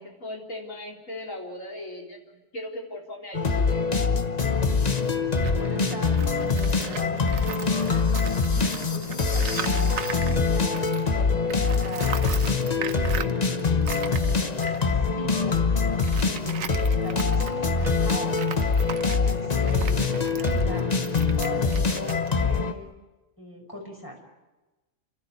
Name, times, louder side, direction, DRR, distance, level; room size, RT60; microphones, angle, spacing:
voice 1, 0.0-2.2 2.5-3.9, left 1 dB, 70° left, 0 dB, 4.2 m, -38 dB
sound 1, 3.3-22.7, left 4 dB, 30° left, 1.1 m, -24 dB
Tools, 5.3-11.2 11.5-22.9, right 7 dB, 80° right, 1.3 m, -39 dB
voice 2, 5.6-10.7 11.1-14.7 15.2-18.4 19.1-22.9 23.4-24.2, equal, 15° left, 0 dB, 5.3 m, -40 dB
29.0 x 13.0 x 9.8 m, 1.1 s
omnidirectional pair, 1.4 m